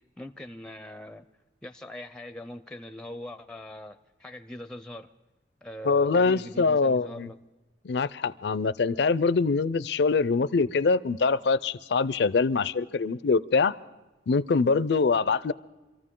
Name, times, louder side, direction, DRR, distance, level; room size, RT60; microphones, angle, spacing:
voice 1, 0.2-1.3 1.6-5.1 5.6-7.4, left 1 dB, 5° left, 10 dB, 0.5 m, -41 dB
voice 2, 5.8-7.3 7.8-13.7 14.3-15.5, left 4 dB, 70° left, 18 dB, 0.4 m, -24 dB
25.5 x 14.5 x 3.7 m, 1.1 s
head